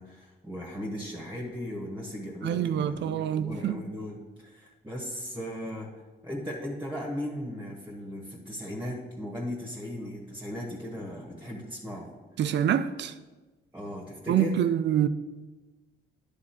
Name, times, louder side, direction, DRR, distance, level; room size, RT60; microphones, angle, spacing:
voice 1, 0.0-5.9 6.2-12.1 13.7-14.6, equal, 10° right, 1.4 m, -37 dB
voice 2, 2.4-3.8 12.4-13.1 14.3-15.1, right 10 dB, 60° right, 0.5 m, -26 dB
9.8 x 3.7 x 5.8 m
cardioid pair, 90°, 20 cm